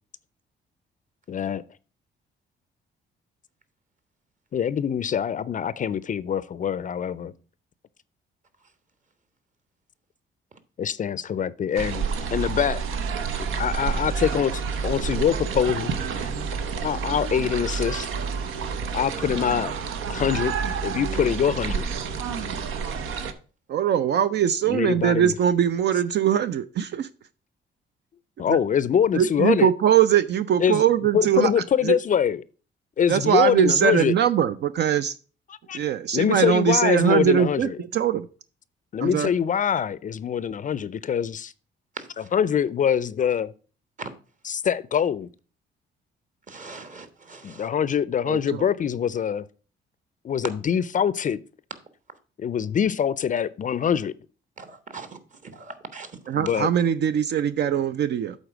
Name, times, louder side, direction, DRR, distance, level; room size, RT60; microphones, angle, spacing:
voice 1, 1.3-1.6 4.5-7.3 10.8-12.1 12.3-12.8 13.5-18.1 18.9-19.7 20.1-20.5 20.8-21.9 24.7-25.3 28.4-29.7 30.6-30.8 31.1-32.4 33.0-34.1 35.5-35.8 36.1-37.8 38.9-41.5 42.2-43.5 44.4-45.3 47.4-49.4 50.2-51.4 52.4-54.1 56.3-56.7, left 8 dB, 40° left, 0.4 m, -24 dB
sound 1, 11.8-23.3, right 6 dB, 90° right, 0.8 m, -29 dB
voice 2, 23.7-27.1 28.5-28.6 29.1-31.9 33.1-35.1 35.7-38.3 39.0-39.3 48.3-48.7 56.3-58.4, right 9 dB, 60° right, 0.4 m, -22 dB
voice 3, 46.5-47.6 54.6-55.1 55.5-56.1, right 4 dB, 40° right, 1.3 m, -39 dB
8.1 x 4.1 x 6.0 m
cardioid pair, 90°, 20 cm